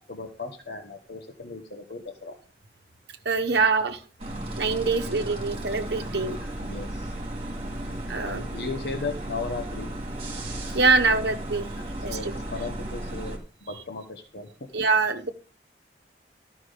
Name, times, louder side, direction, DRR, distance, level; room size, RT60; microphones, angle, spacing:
voice 1, 0.1-2.3 4.9-5.0 5.3-5.4 6.4-7.1 8.2-9.9 11.7-14.5, left 3 dB, 65° left, 5 dB, 1.1 m, -36 dB
voice 2, 3.2-4.0 4.6-6.4 8.1-8.4 10.7-11.7 12.0-12.3 14.7-15.3, right 4 dB, 70° right, 6 dB, 1.1 m, -24 dB
sound 1, 4.2-13.4, right 1 dB, 30° right, 2.3 m, -34 dB
12.5 x 6.1 x 4.9 m, 0.38 s
head